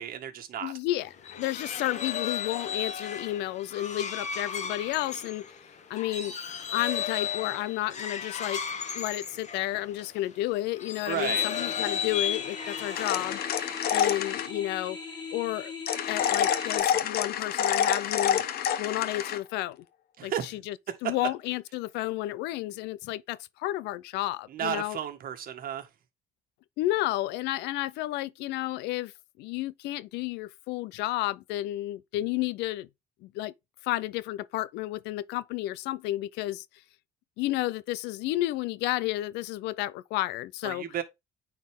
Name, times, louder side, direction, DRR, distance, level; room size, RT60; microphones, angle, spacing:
voice 1, 0.0-0.7 11.1-11.5 20.2-20.6 24.5-25.9 40.6-41.0, right 9 dB, 60° right, 1.8 m, -33 dB
voice 2, 0.6-5.5 5.9-6.4 6.7-8.6 8.9-13.4 13.9-15.0 15.3-15.7 16.1-18.5 18.8-19.8 20.2-20.8 21.0-25.0 26.8-29.1 29.4-32.9 33.2-33.5 33.8-36.6 37.4-40.9, left 16 dB, 90° left, 0.6 m, -31 dB
sound 1, 1.0-10.1 10.7-13.7, left 7 dB, 45° left, 1.4 m, -34 dB
sound 2, 11.3-16.8, left 4 dB, 25° left, 2.3 m, -40 dB
sound 3, 13.0-14.5 15.9-19.4, left 9 dB, 65° left, 1.0 m, -27 dB
9.3 x 4.3 x 3.6 m
cardioid pair, 110°, 17 cm